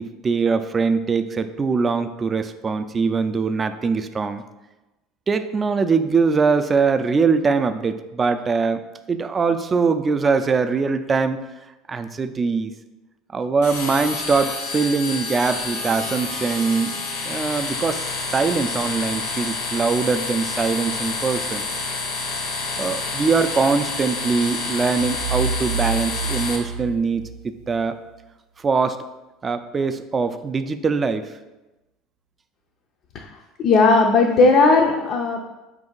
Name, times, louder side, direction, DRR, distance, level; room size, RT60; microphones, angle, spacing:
voice 1, 0.0-4.4 5.3-11.4 11.9-12.7 13.3-21.7 22.8-28.0 28.6-29.0 29.4-31.3, right 4 dB, 30° right, 10 dB, 0.3 m, -22 dB
sound 1, 13.6-26.6, left 3 dB, 80° left, 0.7 m, -28 dB
sound 2, 25.0-27.8, right 5 dB, 85° right, 0.5 m, -28 dB
voice 2, 33.6-35.4, left 3 dB, 55° left, 1 dB, 0.4 m, -16 dB
4.3 x 2.6 x 3.8 m, 1.0 s
supercardioid pair, 90°, 0 cm